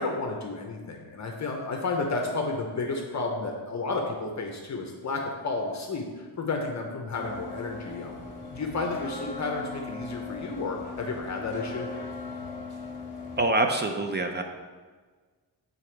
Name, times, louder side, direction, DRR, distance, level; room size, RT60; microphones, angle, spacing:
voice 1, 0.0-8.1 8.5-11.9, left 3 dB, 45° left, 2 dB, 0.7 m, -32 dB
sound 1, 7.1-13.5, left 3 dB, 30° left, 1.5 m, -39 dB
voice 2, 13.4-14.4, right 2 dB, 30° right, 5 dB, 0.4 m, -25 dB
6.8 x 4.1 x 4.4 m, 1.4 s
wide cardioid pair, 175°, 40 cm